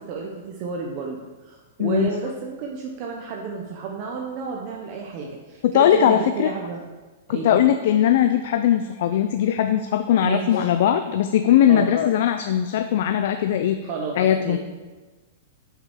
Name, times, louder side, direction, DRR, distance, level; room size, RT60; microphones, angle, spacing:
voice 1, 0.1-6.8 7.3-7.6 10.2-10.7 11.7-11.9 13.8-14.6, right 4 dB, 45° right, 0 dB, 0.8 m, -31 dB
voice 2, 1.8-2.1 5.6-6.5 7.3-13.8 14.2-14.6, left 10 dB, 60° left, 8 dB, 0.4 m, -19 dB
6.0 x 5.2 x 4.9 m, 1.3 s
hypercardioid pair, 140°, 0 cm